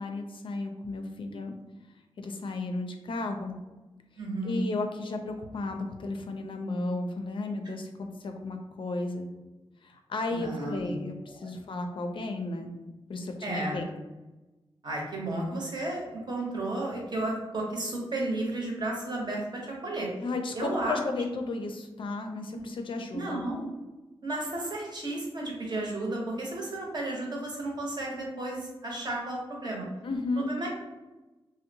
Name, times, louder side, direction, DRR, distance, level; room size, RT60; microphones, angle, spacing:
voice 1, 0.0-1.5 2.2-3.6 4.4-9.3 9.8-12.7 13.1-13.9 20.2-23.4 30.0-30.5, left 2 dB, 60° left, 5 dB, 0.4 m, -34 dB
voice 2, 4.2-4.7 10.3-10.9 11.4-11.5 13.4-13.8 14.8-19.4 19.8-20.1 20.5-21.0 22.5-22.6 23.1-23.7 24.2-29.8 30.4-30.7, right 2 dB, 50° right, -2 dB, 0.8 m, -33 dB
2.7 x 2.0 x 2.6 m, 1.1 s
wide cardioid pair, 80°, 10 cm